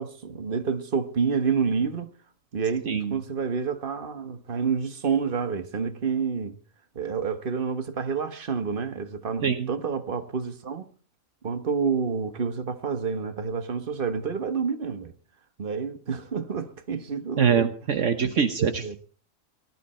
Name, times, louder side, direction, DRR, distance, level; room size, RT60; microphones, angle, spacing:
voice 1, 0.0-2.1 2.5-6.5 6.9-10.9 11.4-15.1 15.6-17.7 18.2-19.0, right 5 dB, 40° right, 1.5 m, -28 dB
voice 2, 17.4-18.9, right 7 dB, 65° right, 1.3 m, -24 dB
19.0 x 13.0 x 4.4 m
omnidirectional pair, 1.4 m